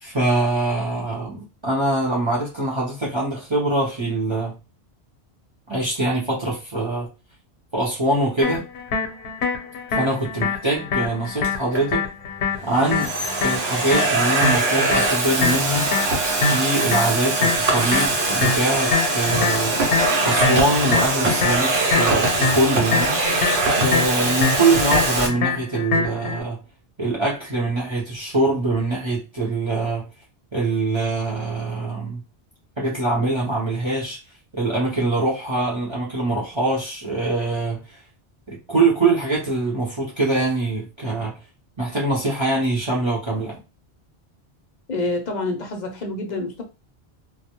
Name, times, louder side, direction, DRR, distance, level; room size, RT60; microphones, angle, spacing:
voice 1, 0.0-4.6 5.7-7.1 7.7-8.7 9.9-12.1 12.6-15.9 16.4-19.8 20.2-23.2 23.8-26.6 27.0-30.1 30.5-32.2 32.8-34.2 34.5-38.0 38.5-41.4 41.8-43.5, right 2 dB, 30° right, 0.6 m, -23 dB
sound 1, 8.4-26.4, left 5 dB, 80° left, 0.9 m, -25 dB
Domestic sounds home sounds, 11.4-11.8 12.6-25.3, right 2 dB, 70° right, 0.8 m, -22 dB
voice 2, 44.9-46.6, left 2 dB, 50° left, 0.6 m, -27 dB
2.1 x 2.1 x 2.8 m
omnidirectional pair, 1.1 m